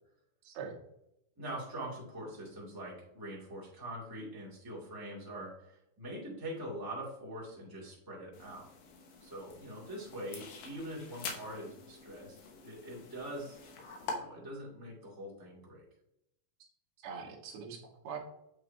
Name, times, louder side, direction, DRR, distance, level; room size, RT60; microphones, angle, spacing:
voice 1, 0.4-0.8 17.0-18.2, right 6 dB, 65° right, 1 dB, 2.2 m, -43 dB
voice 2, 1.4-8.7 9.2-13.6 14.0-15.8, right 1 dB, 10° right, -5 dB, 1.4 m, -43 dB
sound 1, 8.3-14.1, left 4 dB, 80° left, 2.8 m, -46 dB
7.8 x 4.9 x 2.7 m, 0.81 s
omnidirectional pair, 4.0 m